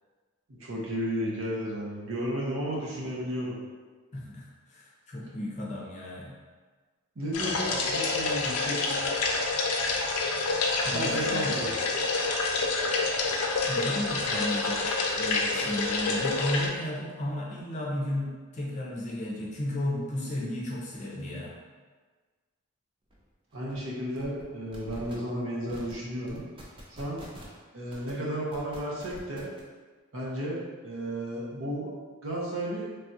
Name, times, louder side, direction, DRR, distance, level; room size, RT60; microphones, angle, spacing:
voice 1, 0.6-3.6 7.2-9.1 10.9-11.7 23.5-26.4 26.9-27.2 27.7-29.5 30.1-31.9 32.2-32.9, equal, 70° right, -4 dB, 0.7 m, -33 dB
voice 2, 4.1-6.4 10.8-11.7 13.7-21.6, left 1 dB, 35° left, -4 dB, 0.5 m, -34 dB
sound 1, 7.3-16.7, left 3 dB, 90° left, 0.5 m, -28 dB
sound 2, 23.1-23.2 23.5-23.8 24.2-24.4 24.7-25.1 25.7-25.9 26.3-27.6 27.9-28.1 28.5-29.6, equal, 25° right, 0.4 m, -46 dB
3.3 x 2.3 x 2.7 m, 1.4 s
head